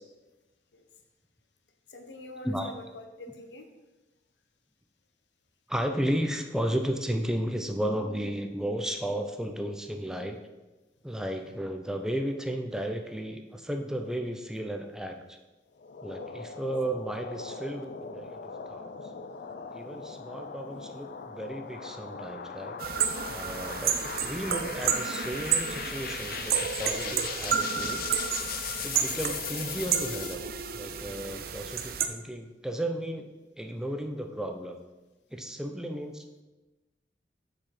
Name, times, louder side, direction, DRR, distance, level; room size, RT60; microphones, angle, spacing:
voice 1, 1.9-3.7 35.9-36.0, left 2 dB, 85° left, 4 dB, 1.0 m, -45 dB
voice 2, 5.7-10.4 11.0-15.4 16.0-18.9 19.7-22.9 23.3-28.1 28.8-30.4 30.7-33.3 33.6-34.8 35.3-36.2, equal, 5° right, 5 dB, 0.5 m, -34 dB
sound 1, 15.8-30.4, left 7 dB, 55° left, 0.5 m, -39 dB
sound 2, 22.8-32.1, right 7 dB, 55° right, 0.6 m, -31 dB
7.3 x 4.9 x 5.9 m, 1.1 s
head